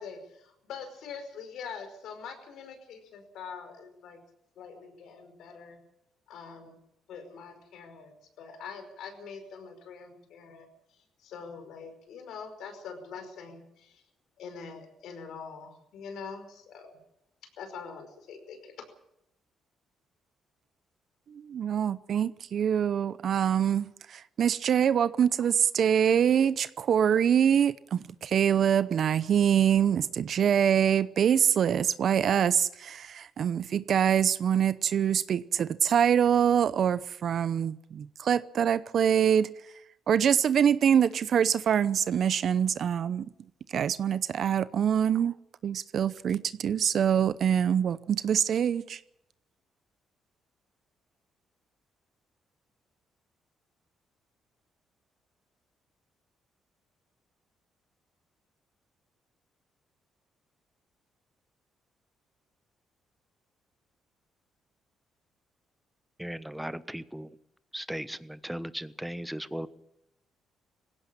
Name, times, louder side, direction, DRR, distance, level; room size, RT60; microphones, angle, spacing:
voice 1, 0.0-4.2 4.6-5.8 6.3-6.8 7.1-10.7 11.2-14.0 14.4-16.9 17.6-18.7, left 5 dB, 80° left, 7 dB, 5.2 m, -44 dB
voice 2, 21.5-39.5 40.1-43.3 43.7-45.3 45.6-49.0, right 8 dB, 60° right, 16 dB, 0.8 m, -25 dB
voice 3, 66.2-67.3 67.7-69.7, right 1 dB, 5° right, 14 dB, 1.2 m, -37 dB
20.0 x 16.5 x 8.8 m, 0.80 s
cardioid pair, 90°, 0 cm